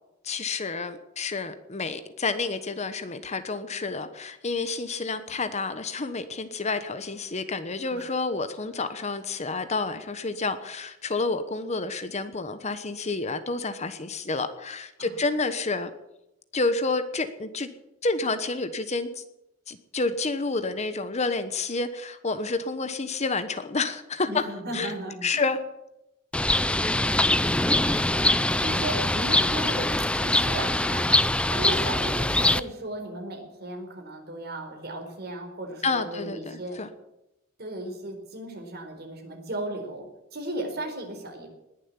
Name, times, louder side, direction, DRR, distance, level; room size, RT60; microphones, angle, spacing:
voice 1, 0.2-15.9 16.5-17.7 18.0-19.2 19.7-24.4 24.7-24.9 25.2-25.6 35.8-36.9, left 3 dB, 35° left, 11 dB, 1.1 m, -29 dB
voice 2, 24.3-25.4 28.1-28.3 28.6-36.8 37.6-40.1 40.3-41.5, right 1 dB, 50° right, 3 dB, 4.3 m, -36 dB
Bird, 26.3-32.6, left 1 dB, 5° left, 0.5 m, -23 dB
20.0 x 7.4 x 9.8 m, 0.91 s
head